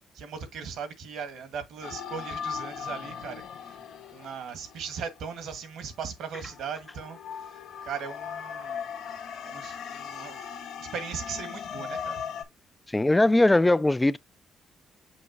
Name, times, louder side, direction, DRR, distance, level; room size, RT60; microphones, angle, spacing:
voice 1, 0.1-3.8 4.1-7.2 7.5-8.8 9.4-10.4 10.8-12.2, right 6 dB, 80° right, 1.7 m, -38 dB
sound 1, 1.8-5.8 6.4-12.4, left 7 dB, 85° left, 1.7 m, -38 dB
voice 2, 12.9-14.2, left 2 dB, 15° left, 0.4 m, -20 dB
6.5 x 5.1 x 2.8 m
cardioid pair, 90°, 0 cm